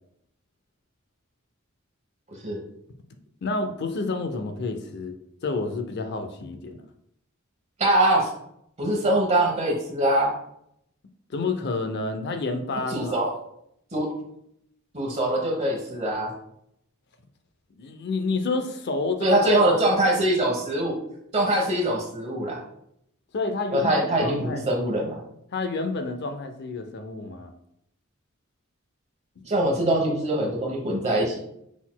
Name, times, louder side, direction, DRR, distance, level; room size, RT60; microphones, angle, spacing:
voice 1, 3.4-5.2 5.4-6.8 11.3-13.3 17.8-19.4 23.3-24.7 25.5-27.5 29.4-29.5, left 3 dB, 55° left, 7 dB, 0.5 m, -29 dB
voice 2, 7.8-8.3 8.8-10.3 12.9-13.3 13.9-14.1 14.9-16.3 19.2-21.0 21.3-22.6 23.7-25.2 29.4-31.4, right 1 dB, 35° right, -1 dB, 1.0 m, -23 dB
5.9 x 4.1 x 2.2 m, 0.75 s
head